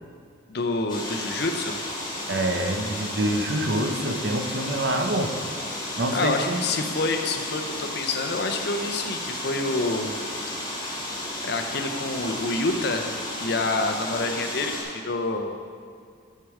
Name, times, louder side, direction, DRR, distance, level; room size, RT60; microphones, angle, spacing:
voice 1, 0.5-1.8 5.8-10.1 11.4-13.1 13.4-15.6, left 3 dB, 55° left, 5 dB, 0.6 m, -27 dB
sound 1, 0.9-14.8, left 1 dB, 20° left, 1.4 m, -33 dB
voice 2, 2.3-5.3 6.0-6.6, right 1 dB, 60° right, 4 dB, 0.7 m, -26 dB
6.8 x 6.3 x 4.8 m, 2.2 s
head